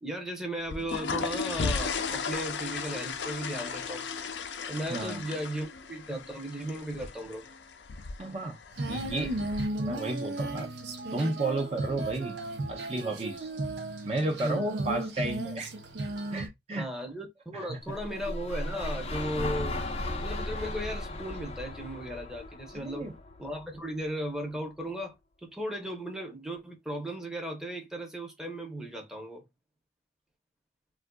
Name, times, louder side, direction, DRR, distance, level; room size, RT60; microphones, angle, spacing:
voice 1, 0.0-4.1 4.7-7.4 14.4-14.7 16.8-19.8 20.1-23.1 23.4-25.2 25.4-29.4, right 1 dB, 5° right, 0.8 m, -36 dB
sound 1, 0.6-9.6, left 5 dB, 80° left, 0.5 m, -36 dB
voice 2, 4.9-5.2 8.2-8.6 8.9-9.5 9.8-10.7 11.1-12.3 12.7-13.5 14.0-15.7 16.3-16.9 17.5-17.8 22.7-23.1, right 2 dB, 35° right, 0.6 m, -32 dB
Female singing, 8.7-16.5, right 2 dB, 80° right, 0.7 m, -35 dB
sound 2, 17.9-24.0, left 2 dB, 35° left, 0.6 m, -36 dB
3.4 x 2.5 x 2.2 m
head